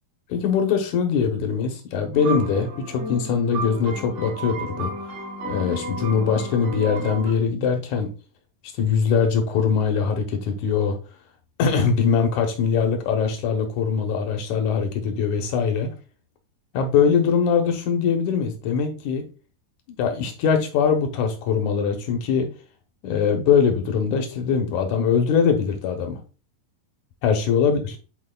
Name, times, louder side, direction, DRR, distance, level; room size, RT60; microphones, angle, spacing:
voice 1, 0.3-4.9 5.4-8.1 8.8-11.0 11.6-15.9 16.7-19.2 20.0-22.5 23.0-26.2 27.2-28.0, left 6 dB, 75° left, 1.9 m, -22 dB
sound 1, 2.1-7.3, right 1 dB, 60° right, 4.5 m, -33 dB
9.9 x 4.4 x 2.2 m
omnidirectional pair, 4.2 m